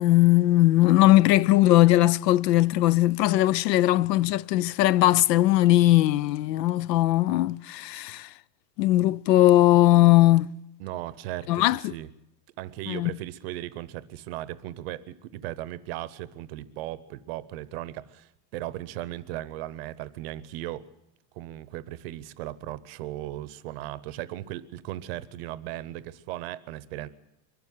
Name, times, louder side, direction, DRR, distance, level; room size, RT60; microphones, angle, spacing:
voice 1, 0.0-8.3 8.8-10.5 11.5-11.9 12.9-13.1, left 15 dB, 75° left, 0.7 m, -19 dB
voice 2, 10.8-12.1 12.6-20.8 21.3-27.1, right 14 dB, 40° right, 0.8 m, -37 dB
23.5 x 12.0 x 9.5 m
supercardioid pair, 180°, 49 cm